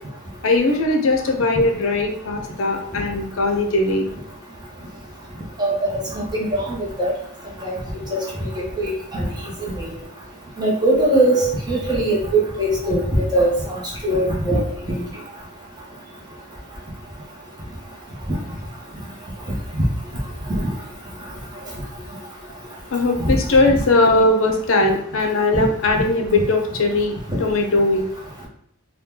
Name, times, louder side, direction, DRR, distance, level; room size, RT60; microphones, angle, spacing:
voice 1, 0.4-4.1 22.9-28.0, left 2 dB, 65° left, 4 dB, 0.5 m, -19 dB
voice 2, 5.6-5.9 6.1-7.1 7.6-7.7 8.1-8.5 8.8-9.3 9.6-9.9 10.6-11.4 11.7-13.6 14.0-14.6 14.9-15.0 23.2-23.3 25.5-25.6, right 1 dB, 20° right, -4 dB, 0.9 m, -20 dB
2.9 x 2.3 x 3.6 m, 0.66 s
head